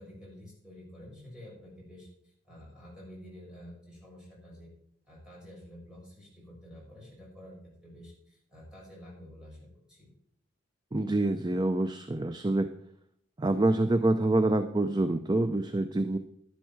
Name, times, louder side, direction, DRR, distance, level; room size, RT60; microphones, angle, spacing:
voice 1, 0.0-4.7 5.0-10.1, equal, 5° right, -5 dB, 6.6 m, -49 dB
voice 2, 10.9-12.7 13.4-16.2, right 2 dB, 20° right, 9 dB, 0.5 m, -26 dB
11.5 x 11.5 x 4.6 m, 0.69 s
head